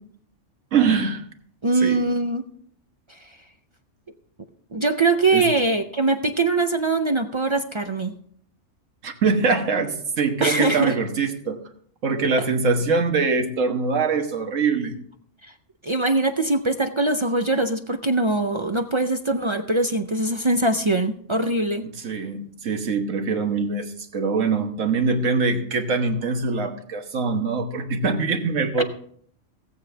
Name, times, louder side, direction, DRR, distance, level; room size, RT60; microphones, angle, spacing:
voice 1, 0.7-1.2 1.8-2.1 5.3-5.5 9.0-11.6 12.0-14.9 21.9-28.8, right 4 dB, 75° right, 5 dB, 1.6 m, -23 dB
voice 2, 1.6-2.4 4.7-8.1 10.4-10.9 15.8-21.8, right 2 dB, 50° right, 7 dB, 0.3 m, -22 dB
16.5 x 8.0 x 3.3 m, 0.62 s
omnidirectional pair, 1.3 m